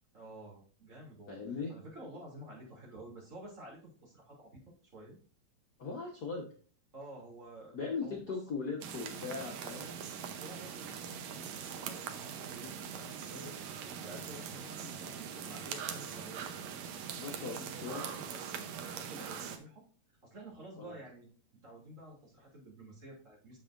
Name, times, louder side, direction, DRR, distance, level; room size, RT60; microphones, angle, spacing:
voice 1, 0.1-4.6 4.9-5.2 6.9-7.7 8.0-8.4 10.2-13.6 14.0-16.5 17.2-19.8 20.2-21.3 21.6-23.6, right 1 dB, 25° right, -4 dB, 2.8 m, -51 dB
voice 2, 1.3-1.7 5.8-6.5 7.7-9.9 17.1-18.1 20.8-21.0, left 5 dB, 75° left, -1 dB, 0.9 m, -39 dB
sound 1, 8.8-19.6, right 7 dB, 70° right, 1.9 m, -42 dB
8.5 x 7.3 x 2.5 m, 0.41 s
omnidirectional pair, 3.6 m